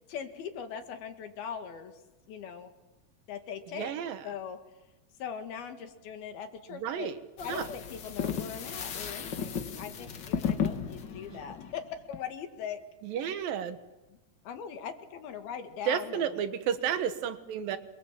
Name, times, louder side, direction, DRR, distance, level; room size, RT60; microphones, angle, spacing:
voice 1, 0.1-2.0 2.3-2.7 3.3-4.0 4.2-4.6 5.2-7.1 7.4-12.8 13.1-13.2 14.5-16.3, left 7 dB, 85° left, 6 dB, 3.9 m, -40 dB
voice 2, 3.7-4.2 6.7-7.2 7.5-7.7 11.3-11.4 13.0-13.8 15.9-17.8, right 8 dB, 75° right, 10 dB, 3.0 m, -32 dB
sound 1, 7.4-12.2, left 7 dB, 70° left, 1.0 m, -34 dB
27.0 x 22.5 x 7.6 m, 1.1 s
omnidirectional pair, 4.3 m